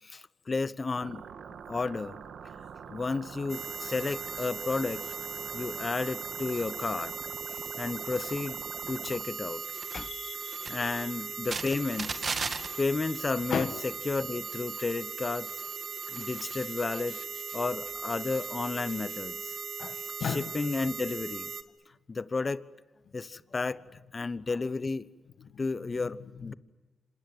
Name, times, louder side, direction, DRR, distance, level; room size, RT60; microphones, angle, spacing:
voice 1, 0.0-1.2 1.5-2.2 2.9-5.0 5.5-7.1 7.8-8.6 8.9-9.6 9.9-10.1 10.7-12.2 12.8-15.6 16.1-17.2 17.5-19.6 20.2-21.5 22.1-22.7 23.1-23.8 24.1-25.1 25.6-26.5, left 3 dB, 40° left, 1.1 m, -32 dB
sound 1, 1.0-9.2, right 7 dB, 75° right, 1.6 m, -45 dB
sound 2, 3.5-21.6, right 5 dB, 55° right, 2.1 m, -38 dB
voice 2, 9.9-10.8 13.5-13.7 16.5-16.6 19.8-20.5 26.5-26.6, left 7 dB, 75° left, 1.6 m, -35 dB
27.0 x 27.0 x 8.0 m
supercardioid pair, 55°, 0 cm